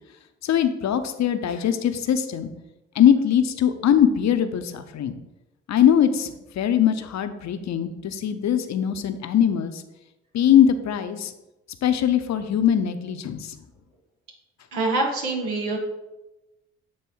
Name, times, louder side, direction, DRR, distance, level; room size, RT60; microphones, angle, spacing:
voice 1, 0.4-2.5 2.9-5.1 5.7-6.3 6.6-9.8 10.3-11.3 11.8-13.5, left 9 dB, 55° left, 9 dB, 0.7 m, -21 dB
voice 2, 14.7-15.8, right 2 dB, 80° right, -1 dB, 1.7 m, -25 dB
8.5 x 3.0 x 4.6 m, 0.98 s
hypercardioid pair, 45°, 32 cm